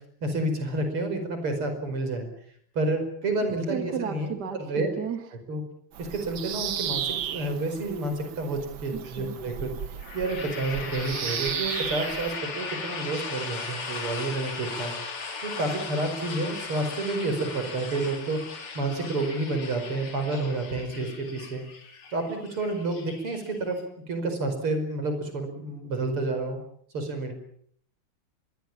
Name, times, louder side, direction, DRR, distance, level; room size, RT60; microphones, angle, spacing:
voice 1, 0.2-2.3 2.8-4.9 5.5-5.6 6.0-9.7 10.1-14.9 15.4-18.4 18.7-21.6 22.1-23.8 24.1-26.6 26.9-27.3, right 2 dB, 85° right, 7 dB, 5.9 m, -29 dB
voice 2, 3.7-5.2 8.9-9.3, right 7 dB, 50° right, 8 dB, 2.4 m, -33 dB
Bird vocalization bird call bird song, 5.9-12.4, right 9 dB, 65° right, 1.9 m, -34 dB
sound 1, 10.0-23.8, left 4 dB, 85° left, 3.9 m, -38 dB
24.0 x 21.5 x 7.3 m, 0.63 s
omnidirectional pair, 2.3 m